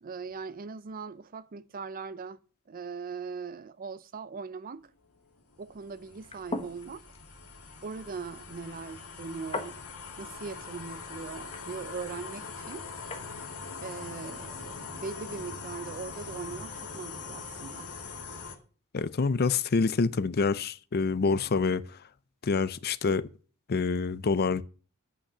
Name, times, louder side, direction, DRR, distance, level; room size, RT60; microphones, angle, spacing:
voice 1, 0.0-2.4 2.7-4.9 5.6-7.1 7.8-9.8 10.2-12.9 13.8-17.9, right 5 dB, 40° right, 0.4 m, -40 dB
sound 1, 5.1-18.5, left 4 dB, 90° left, 2.1 m, -42 dB
sound 2, 6.1-13.3, left 2 dB, 25° left, 1.1 m, -43 dB
voice 2, 18.9-21.8 22.4-23.3 23.7-24.6, left 4 dB, 45° left, 0.5 m, -26 dB
8.4 x 5.8 x 6.6 m
head